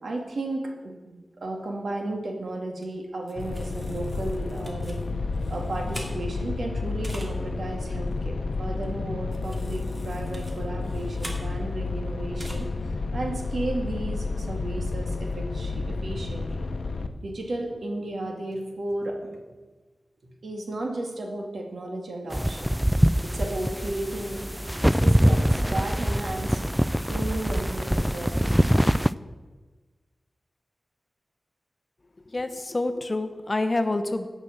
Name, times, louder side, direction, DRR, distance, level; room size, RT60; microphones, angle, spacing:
voice 1, 0.0-5.0 5.5-16.7 17.1-19.4 20.2-22.7 23.0-24.5 24.8-26.6 27.0-28.9, right 2 dB, 80° right, 1 dB, 2.3 m, -34 dB
sound 1, 2.8-2.9 3.3-6.5 7.0-7.3 8.8-8.9 9.3-11.9 12.4-12.5, right 1 dB, 25° right, 2.4 m, -44 dB
sound 2, 3.4-17.1, left 3 dB, 85° left, 0.8 m, -31 dB
sound 3, 22.3-29.1, equal, 5° right, 0.3 m, -23 dB
voice 2, 32.3-34.3, left 2 dB, 35° left, 9 dB, 1.0 m, -27 dB
16.5 x 6.3 x 6.7 m, 1.3 s
wide cardioid pair, 90°, 0 cm